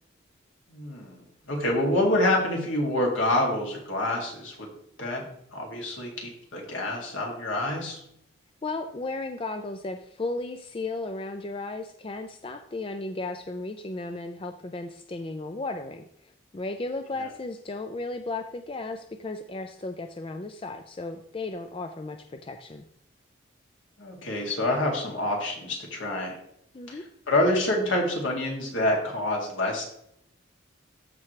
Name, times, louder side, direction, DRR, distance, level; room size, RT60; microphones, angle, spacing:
voice 1, 0.7-1.2 1.5-4.7 5.0-5.2 5.5-8.0 24.0-26.3 26.9-29.8, left 1 dB, 70° left, -1 dB, 2.3 m, -27 dB
voice 2, 8.6-22.8 26.7-27.0, left 2 dB, 25° left, 7 dB, 0.4 m, -35 dB
13.5 x 4.7 x 3.2 m, 0.73 s
head